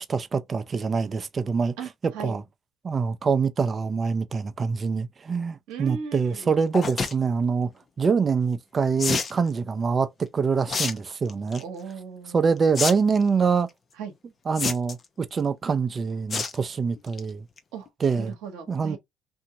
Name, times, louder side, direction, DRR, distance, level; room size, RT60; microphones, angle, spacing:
voice 1, 0.0-1.7 2.0-2.4 2.8-7.7 8.0-11.6 12.3-13.7 14.5-17.5 18.0-18.3 18.7-19.0, right 5 dB, 40° right, 0.5 m, -25 dB
voice 2, 1.8-2.3 5.7-6.5 11.6-12.5 14.0-14.1 17.7-17.9 18.2-19.0, right 6 dB, 80° right, 0.9 m, -37 dB
sound 1, 6.7-7.1 9.0-9.3 10.7-10.9 11.3-11.6 12.7-12.9 13.2-13.3 14.6-15.1 16.3-16.6 17.0-17.2 17.6-17.7 17.9-18.0, left 5 dB, 45° left, 0.7 m, -27 dB
2.7 x 2.7 x 2.6 m
hypercardioid pair, 55°, 0 cm